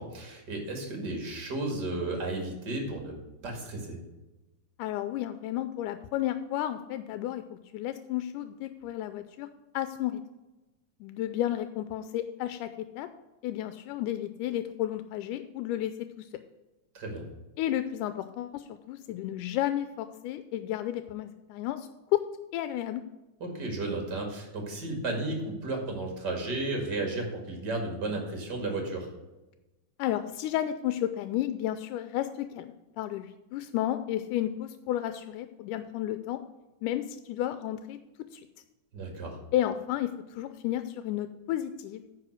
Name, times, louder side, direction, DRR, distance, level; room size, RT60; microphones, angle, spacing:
voice 1, 0.0-3.2 3.4-4.0 16.9-17.2 23.4-29.1 38.9-39.4, right 2 dB, 35° right, 2 dB, 2.3 m, -33 dB
voice 2, 4.8-9.5 9.7-10.2 11.0-13.1 13.4-16.3 17.6-22.2 22.5-23.0 30.0-36.4 36.8-38.0 38.3-38.5 39.5-42.0, left 12 dB, 85° left, 10 dB, 2.1 m, -32 dB
9.8 x 5.0 x 6.2 m, 1.1 s
omnidirectional pair, 3.6 m